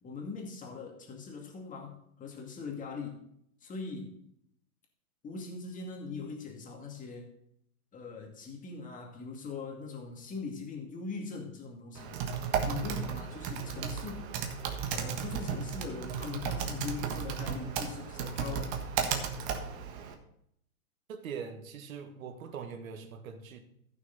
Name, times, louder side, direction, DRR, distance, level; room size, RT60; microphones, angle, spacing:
voice 1, 0.0-3.2 3.6-4.2 5.2-7.3 7.9-12.1 12.6-14.3 14.9-18.8, left 5 dB, 15° left, 1 dB, 2.3 m, -41 dB
Typing, 11.9-20.1, right 7 dB, 40° right, 1.4 m, -34 dB
voice 2, 21.1-23.6, right 6 dB, 65° right, 7 dB, 1.8 m, -42 dB
14.5 x 6.1 x 4.1 m, 0.72 s
hypercardioid pair, 125°, 44 cm